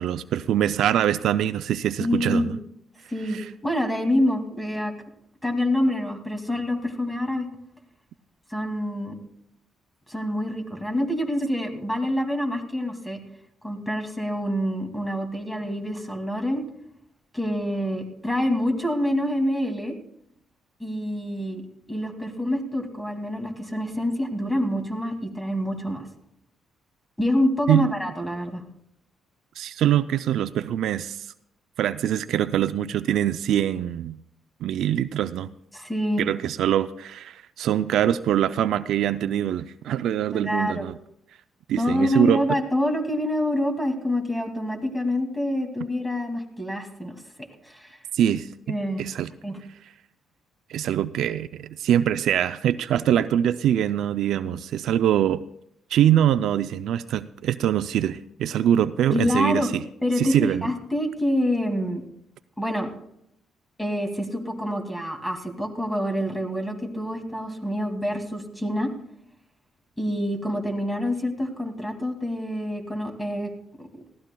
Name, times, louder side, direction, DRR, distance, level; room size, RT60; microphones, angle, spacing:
voice 1, 0.0-2.6 3.3-3.5 27.7-27.9 29.6-31.3 31.8-34.2 34.6-35.5 36.2-41.0 41.7-42.4 48.1-49.3 50.7-55.4 55.9-59.8 60.2-60.7, right 10 dB, 75° right, 12 dB, 0.4 m, -23 dB
voice 2, 2.0-2.5 3.1-4.9 5.4-7.5 8.5-9.1 10.1-13.2 13.6-16.6 17.3-20.0 20.8-21.6 21.9-26.1 27.2-28.6 35.7-36.2 40.3-40.9 41.8-47.1 47.6-48.0 48.7-49.0 49.4-49.6 59.1-59.7 60.0-62.0 62.6-62.9 63.8-68.9 70.0-73.5 73.8-73.9, left 1 dB, 5° left, 3 dB, 2.3 m, -26 dB
20.0 x 15.5 x 2.2 m, 0.75 s
cardioid pair, 90°, 0 cm